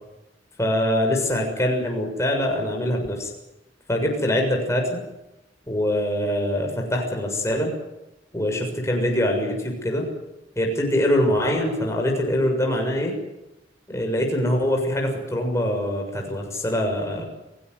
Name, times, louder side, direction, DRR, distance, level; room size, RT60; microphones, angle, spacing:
voice 1, 0.6-3.3 3.9-5.0 5.7-7.7 8.3-10.0 10.6-13.2 13.9-17.2, left 1 dB, 15° left, 1 dB, 6.7 m, -23 dB
30.0 x 17.0 x 8.0 m, 0.93 s
head